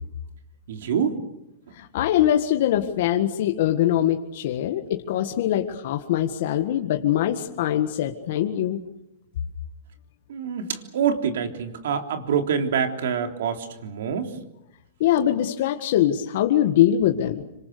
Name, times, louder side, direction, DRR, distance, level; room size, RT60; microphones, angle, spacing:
voice 1, 0.7-1.2 1.7-1.8 10.3-14.4, right 7 dB, 75° right, 5 dB, 3.5 m, -26 dB
voice 2, 1.7-8.8 15.0-17.4, left 11 dB, 60° left, 4 dB, 1.7 m, -22 dB
26.0 x 26.0 x 6.7 m, 0.85 s
hypercardioid pair, 150°, 0 cm